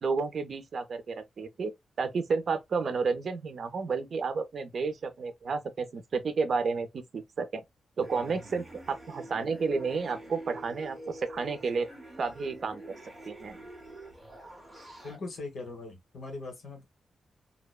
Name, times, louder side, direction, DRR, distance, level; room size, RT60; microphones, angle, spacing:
voice 1, 0.0-1.7 2.0-7.6 8.0-11.9 12.2-12.8 13.3-13.6, right 4 dB, 50° right, 0.5 m, -31 dB
sound 1, 8.0-15.2, right 1 dB, 10° right, 1.0 m, -47 dB
voice 2, 15.0-16.8, left 3 dB, 60° left, 1.1 m, -40 dB
2.7 x 2.1 x 2.3 m
wide cardioid pair, 125°, 0 cm